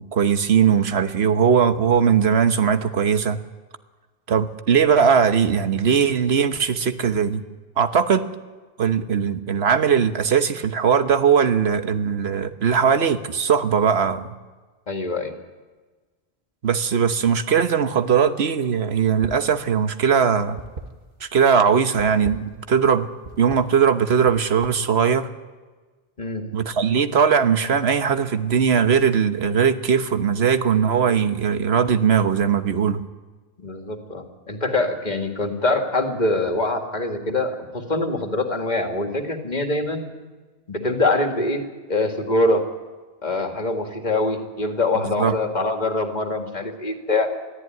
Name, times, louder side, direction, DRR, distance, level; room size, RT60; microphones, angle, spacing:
voice 1, 0.0-3.4 4.3-7.4 7.8-8.3 8.8-14.3 16.6-20.6 21.2-23.1 23.4-25.3 26.5-33.0 45.0-45.3, right 7 dB, 80° right, 10 dB, 1.4 m, -19 dB
voice 2, 14.9-15.3 26.2-26.4 33.6-40.1 40.7-41.6 41.9-42.6 43.2-47.3, left 2 dB, 45° left, 5 dB, 2.2 m, -24 dB
sound 1, 19.1-19.5 19.8-21.4 21.9-22.9 23.2-23.6 24.1-25.0, right 3 dB, 60° right, 1.8 m, -38 dB
22.0 x 14.0 x 9.2 m, 1.3 s
omnidirectional pair, 1.1 m